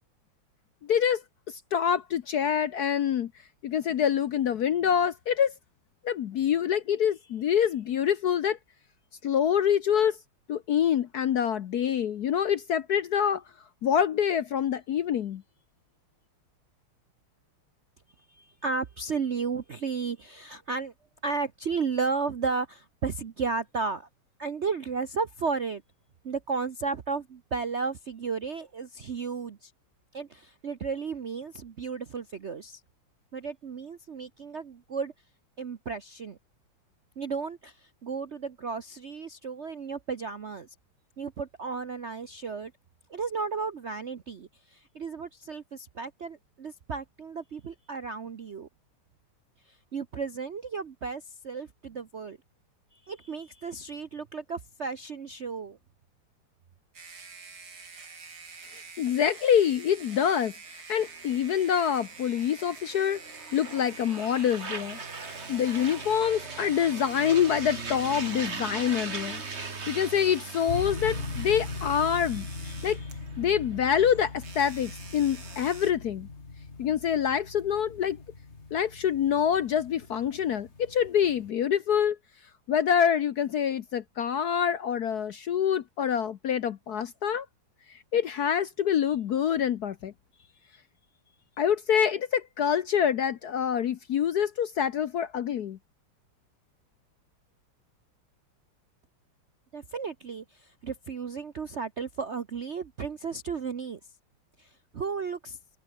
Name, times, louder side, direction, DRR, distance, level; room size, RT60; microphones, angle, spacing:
voice 1, 0.9-3.3 3.6-5.5 6.0-8.6 9.2-10.2 10.5-13.4 13.8-15.4 59.0-63.2 63.5-65.0 65.5-69.4 69.9-73.0 73.4-76.3 76.8-78.2 78.7-82.2 82.7-87.5 88.1-90.1 91.6-95.8, left 8 dB, 60° left, 1.1 m, -26 dB
voice 2, 18.3-20.9 21.2-24.1 24.4-25.8 26.2-29.7 30.1-32.8 33.3-35.1 35.6-36.4 37.2-40.7 41.2-42.7 43.1-48.7 49.9-52.4 52.9-55.8 99.7-104.0 104.6-105.6, right 5 dB, 55° right, 0.8 m, -34 dB
sound 1, 56.9-73.3 74.4-75.9, right 4 dB, 75° right, 4.6 m, -47 dB
sound 2, 61.0-75.8, right 4 dB, 30° right, 2.4 m, -41 dB
sound 3, 70.7-81.5, left 3 dB, 30° left, 2.9 m, -40 dB
omnidirectional pair, 2.4 m